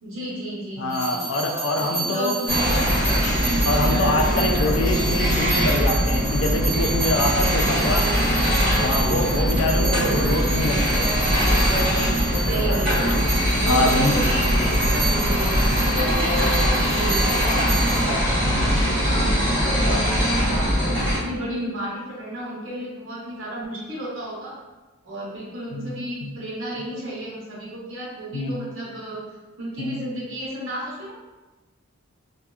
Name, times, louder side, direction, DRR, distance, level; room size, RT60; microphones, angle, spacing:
voice 1, 0.0-1.3 1.8-3.0 3.8-4.6 7.4-8.4 10.2-10.6 12.4-15.3 15.7-19.3 19.7-24.6 25.0-29.2 29.6-31.2, right 1 dB, 70° right, -6 dB, 0.9 m, -33 dB
voice 2, 0.8-2.4 3.4-8.1 8.8-11.1 12.5-12.8 13.7-14.2 15.5-15.8 18.5-18.7 25.7-25.9 26.2-26.3 28.3-28.5 29.8-30.0, left 2 dB, 65° left, 3 dB, 0.3 m, -25 dB
sound 1, 0.9-18.0, right 3 dB, 15° right, 1.0 m, -31 dB
sound 2, 2.5-21.2, equal, 30° right, 1.3 m, -21 dB
sound 3, 10.9-17.0, equal, 30° left, 0.7 m, -33 dB
2.6 x 2.2 x 2.3 m, 1.2 s
head